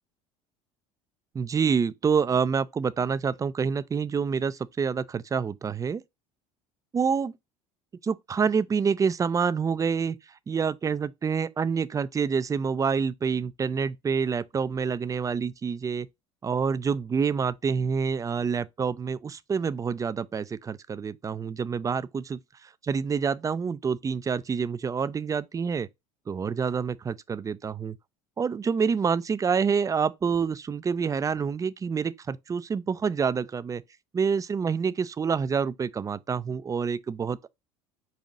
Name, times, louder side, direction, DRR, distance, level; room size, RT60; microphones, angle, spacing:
voice 1, 1.3-6.0 6.9-7.3 8.0-10.2 10.5-16.1 16.4-25.9 26.3-28.0 28.4-33.8 34.1-37.5, right 6 dB, 20° right, 0.4 m, -27 dB
5.4 x 2.4 x 3.9 m
hypercardioid pair, 80°, 16 cm